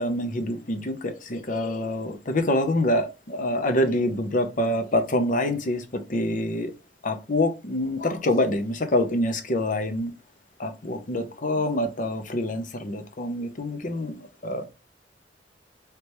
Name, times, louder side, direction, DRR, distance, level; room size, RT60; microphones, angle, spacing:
voice 1, 0.0-6.7 7.0-10.1 10.6-14.2 14.4-14.7, left 1 dB, 45° left, 0.7 m, -26 dB
4.8 x 3.3 x 3.0 m
head